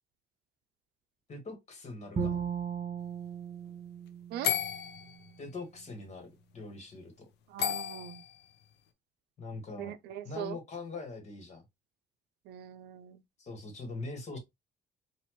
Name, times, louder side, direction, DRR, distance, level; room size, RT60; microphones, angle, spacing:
voice 1, 1.3-2.4 5.4-7.1 9.4-9.9 10.2-11.6 13.4-14.4, left 3 dB, 40° left, 1.7 m, -42 dB
Bowed string instrument, 2.2-5.3, right 6 dB, 30° right, 1.5 m, -37 dB
sound 1, 4.4-5.3 7.6-8.5, left 9 dB, 85° left, 0.7 m, -33 dB
voice 2, 7.5-8.2 9.8-10.6 12.5-13.2, right 11 dB, 80° right, 0.6 m, -41 dB
4.2 x 2.6 x 3.0 m
cardioid pair, 110°, 17 cm